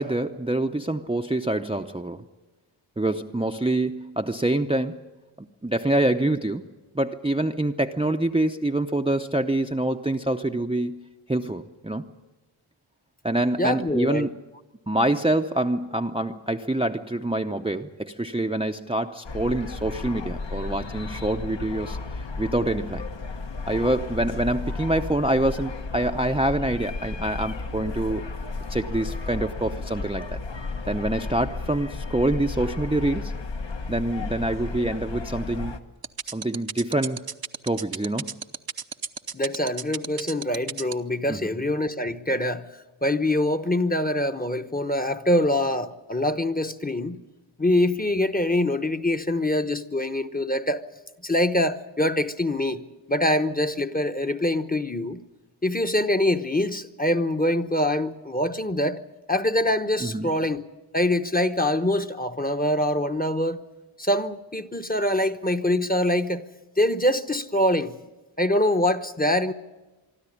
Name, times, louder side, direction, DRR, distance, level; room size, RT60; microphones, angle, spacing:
voice 1, 0.0-2.2 3.0-5.0 5.4-6.6 6.9-11.0 11.3-12.1 13.2-14.3 14.9-22.0 22.4-23.1 23.7-28.3 28.7-30.4 30.9-33.3 33.9-35.8 36.3-37.2 37.6-38.3 41.3-41.4 60.0-60.4, right 1 dB, 10° right, 0.7 m, -26 dB
voice 2, 13.6-14.3 39.3-42.7 43.0-47.2 47.6-50.8 51.2-52.8 53.1-55.2 55.6-59.0 59.3-60.6 60.9-63.6 64.0-66.4 66.8-67.9 68.4-69.5, left 1 dB, 15° left, 1.0 m, -24 dB
sound 1, 19.2-35.8, left 3 dB, 60° left, 1.3 m, -33 dB
sound 2, 36.0-40.9, right 6 dB, 45° right, 0.8 m, -31 dB
24.0 x 12.5 x 9.9 m
wide cardioid pair, 65°, 50 cm